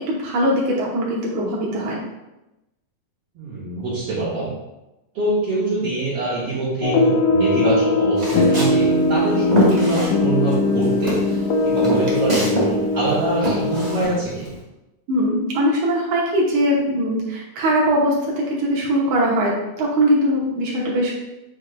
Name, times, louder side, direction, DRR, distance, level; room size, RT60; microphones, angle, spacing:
voice 1, 0.1-2.0 15.1-21.1, equal, 80° right, -3 dB, 2.4 m, -21 dB
voice 2, 3.4-4.5 5.1-14.5, right 2 dB, 60° right, -9 dB, 2.1 m, -24 dB
sound 1, 6.8-14.0, left 2 dB, 90° left, 1.4 m, -20 dB
Walk footsteps, 8.1-10.6 10.8-12.7 13.0-14.5, equal, 25° right, 0.8 m, -24 dB
8.2 x 5.2 x 2.3 m, 0.98 s
omnidirectional pair, 3.4 m